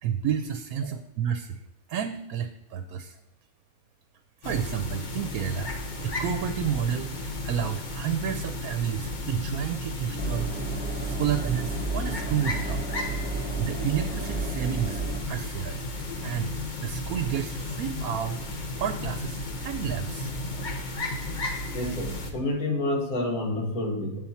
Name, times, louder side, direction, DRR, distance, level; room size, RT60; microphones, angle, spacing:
voice 1, 0.0-1.6 1.9-3.2 4.4-5.7 6.0-12.8 13.6-15.8 16.2-16.5 16.8-18.4 18.8-20.3, right 8 dB, 85° right, 9 dB, 1.1 m, -31 dB
sound 1, 4.4-22.3, left 1 dB, 40° left, 0.9 m, -33 dB
Engine, 10.2-15.2, right 5 dB, 10° right, 0.5 m, -33 dB
voice 2, 21.7-24.2, left 1 dB, 80° left, 2 dB, 1.9 m, -28 dB
8.0 x 7.0 x 4.2 m, 0.92 s
omnidirectional pair, 1.5 m